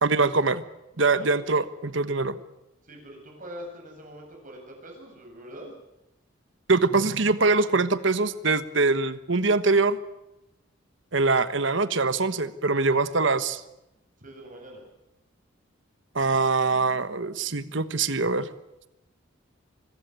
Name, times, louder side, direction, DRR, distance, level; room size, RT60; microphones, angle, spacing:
voice 1, 0.0-0.6 1.0-2.4 6.7-10.0 11.1-13.6 16.1-18.5, right 3 dB, 65° right, 14 dB, 1.3 m, -23 dB
voice 2, 2.8-5.7 14.2-14.8, equal, 40° right, 1 dB, 8.0 m, -43 dB
25.0 x 16.0 x 9.4 m, 0.92 s
head